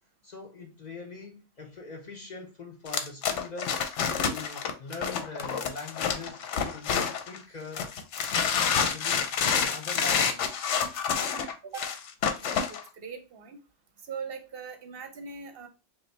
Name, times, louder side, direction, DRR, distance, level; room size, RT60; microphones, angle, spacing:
voice 1, 0.2-3.8 4.2-6.4 6.7-7.9 8.6-10.6, left 3 dB, 45° left, 0.6 m, -42 dB
sound 1, 2.9-7.4 7.8-12.8, left 7 dB, 75° left, 0.9 m, -28 dB
voice 2, 12.4-13.6 14.0-15.7, right 5 dB, 60° right, 0.7 m, -41 dB
5.2 x 2.1 x 3.2 m
omnidirectional pair, 1.2 m